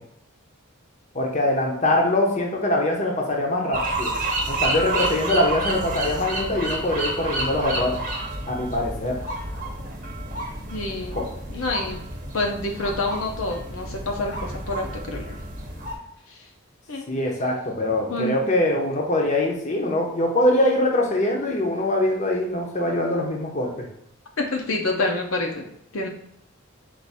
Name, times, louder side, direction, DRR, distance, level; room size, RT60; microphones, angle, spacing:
voice 1, 1.1-4.1 4.5-8.0 8.5-9.2 11.1-11.2 17.1-23.9, left 1 dB, 35° left, 0 dB, 0.7 m, -23 dB
sound 1, 3.7-16.0, right 2 dB, 35° right, 0.9 m, -30 dB
voice 2, 10.7-11.2 11.5-12.0 12.3-15.4 16.3-16.4 16.9-17.1 18.1-18.4 24.4-25.6 25.9-26.1, left 2 dB, 75° left, 1 dB, 0.7 m, -27 dB
4.7 x 2.5 x 4.0 m, 0.73 s
head